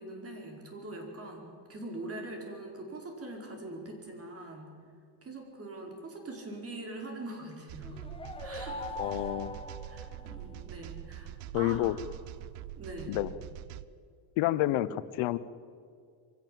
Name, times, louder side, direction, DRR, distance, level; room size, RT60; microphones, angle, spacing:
voice 1, 0.0-4.7 5.2-9.3 9.9-11.9 12.8-13.2, right 2 dB, 30° right, 2 dB, 4.6 m, -43 dB
sound 1, 7.7-13.9, right 13 dB, 85° right, 0.9 m, -44 dB
sound 2, 7.8-10.7, left 2 dB, 10° left, 1.3 m, -42 dB
voice 2, 9.0-9.5 11.5-12.0 13.1-13.3 14.4-15.4, left 15 dB, 75° left, 17 dB, 1.0 m, -29 dB
23.0 x 16.5 x 7.6 m, 2.2 s
cardioid pair, 125°, 47 cm